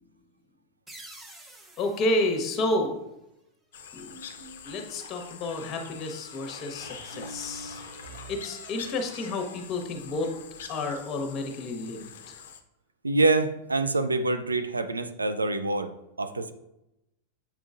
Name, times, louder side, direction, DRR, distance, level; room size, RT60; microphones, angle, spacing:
sound 1, 0.9-3.4, right 1 dB, 10° right, 0.8 m, -50 dB
voice 1, 1.8-3.0 3.9-4.1 4.6-7.8 8.3-10.3 10.7-12.3, left 2 dB, 30° left, 4 dB, 1.1 m, -30 dB
sound 2, 3.7-12.6, left 7 dB, 60° left, 0.5 m, -45 dB
sound 3, 4.1-5.0 6.8-10.6, right 2 dB, 55° right, 2.2 m, -47 dB
voice 2, 13.0-15.9 16.2-16.5, right 3 dB, 80° right, 9 dB, 0.4 m, -25 dB
7.4 x 5.1 x 2.5 m, 0.88 s
figure-of-eight pair, 90°, 0 cm